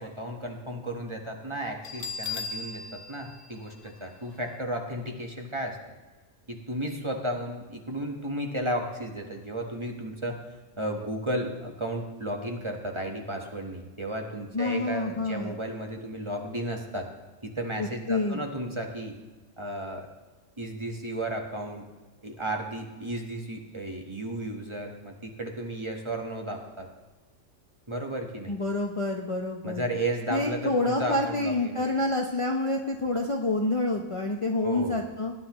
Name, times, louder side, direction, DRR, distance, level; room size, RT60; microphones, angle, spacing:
voice 1, 0.0-5.8 6.5-10.4 10.8-17.1 17.4-19.1 19.6-20.1 20.6-21.8 22.2-26.9 27.9-28.5 29.6-31.9 34.6-35.0, right 1 dB, 25° right, 2 dB, 1.3 m, -33 dB
Bell, 1.8-4.5, left 4 dB, 75° left, 1.2 m, -38 dB
voice 2, 14.5-15.5 17.8-18.4 28.5-29.8 30.3-35.3, left 2 dB, 30° left, 1 dB, 0.7 m, -28 dB
19.0 x 10.0 x 3.0 m, 1.2 s
omnidirectional pair, 1.3 m